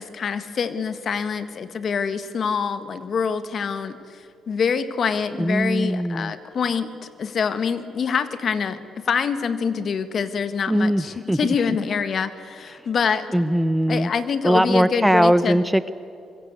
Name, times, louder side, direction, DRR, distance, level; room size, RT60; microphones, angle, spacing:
voice 1, 0.0-4.0 4.5-6.9 7.2-8.8 9.0-13.3 13.9-15.6, left 6 dB, 55° left, 11 dB, 1.6 m, -25 dB
voice 2, 5.4-6.3 10.7-11.8 13.3-14.1 14.4-15.9, equal, 5° right, 14 dB, 0.7 m, -20 dB
24.5 x 22.5 x 8.3 m, 2.5 s
cardioid pair, 90°, 0 cm